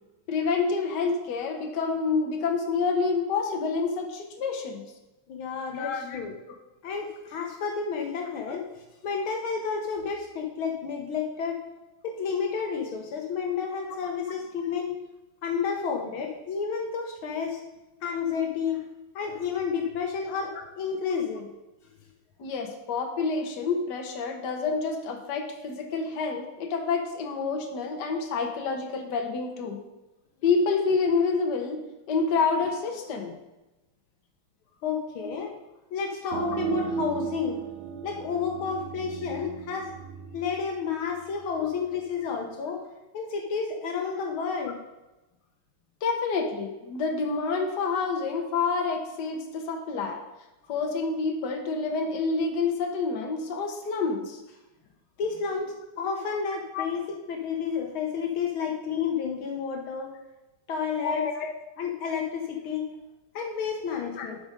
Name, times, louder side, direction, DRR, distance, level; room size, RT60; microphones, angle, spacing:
voice 1, 0.3-4.8 5.7-6.2 22.4-29.8 30.4-31.8 32.1-33.3 46.0-50.2 50.7-54.4 56.7-56.8 61.0-61.5 64.1-64.4, left 4 dB, 55° left, 3 dB, 1.7 m, -28 dB
voice 2, 5.3-6.4 6.8-8.7 9.0-11.6 12.0-15.0 15.4-17.6 18.0-18.9 19.2-21.5 34.8-35.5 35.9-37.6 38.0-39.9 40.3-42.8 43.1-44.8 55.2-60.1 60.7-61.2 61.8-62.9 63.3-64.4, left 6 dB, 75° left, 3 dB, 1.8 m, -31 dB
sound 1, 36.3-41.7, right 8 dB, 75° right, 1.5 m, -35 dB
12.0 x 5.1 x 5.1 m, 1.0 s
omnidirectional pair, 2.4 m